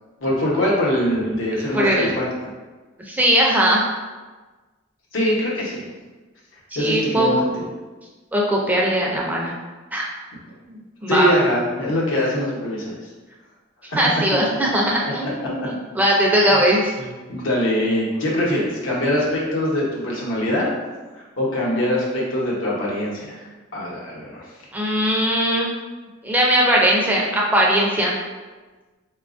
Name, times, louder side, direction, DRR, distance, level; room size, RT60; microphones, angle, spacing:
voice 1, 0.2-2.3 5.1-5.8 6.7-7.5 11.1-13.0 15.2-15.3 17.3-20.7 21.1-23.4 23.7-24.4, left 1 dB, 85° left, -5 dB, 0.9 m, -22 dB
voice 2, 1.7-2.1 3.1-3.8 6.7-7.3 8.3-9.5 9.9-10.0 10.7-11.3 14.0-16.9 24.7-25.7 26.2-28.2, right 1 dB, 10° right, -3 dB, 0.4 m, -19 dB
4.0 x 2.3 x 2.5 m, 1.3 s
head